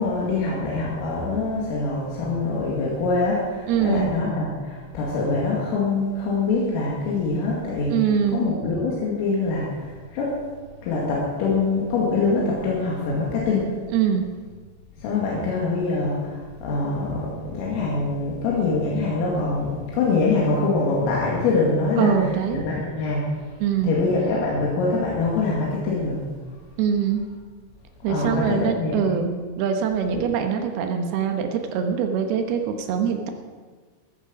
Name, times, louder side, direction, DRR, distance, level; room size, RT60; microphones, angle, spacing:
voice 1, 0.0-8.0 8.3-10.4 10.8-13.7 15.0-22.1 22.5-23.3 23.8-26.2 28.1-28.9, left 3 dB, 85° left, -4 dB, 4.8 m, -24 dB
voice 2, 3.7-4.1 7.9-8.5 13.9-14.3 22.0-22.6 23.6-24.0 26.8-27.3 28.0-33.3, right 7 dB, 75° right, 5 dB, 2.4 m, -23 dB
14.0 x 13.0 x 5.2 m, 1.5 s
omnidirectional pair, 5.8 m